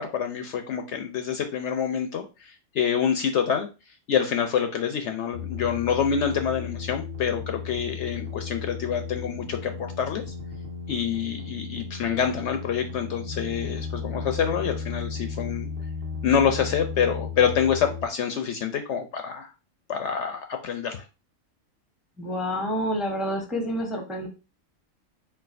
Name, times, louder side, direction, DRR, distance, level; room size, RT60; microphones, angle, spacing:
voice 1, 0.0-3.7 4.1-10.2 10.9-15.7 16.2-19.5 19.9-21.0, left 7 dB, 65° left, 6 dB, 0.8 m, -26 dB
sound 1, 5.3-18.1, left 5 dB, 50° right, 1.3 m, -35 dB
voice 2, 22.2-24.3, equal, ahead, 2 dB, 0.7 m, -28 dB
4.5 x 3.7 x 2.5 m, 0.30 s
omnidirectional pair, 1.4 m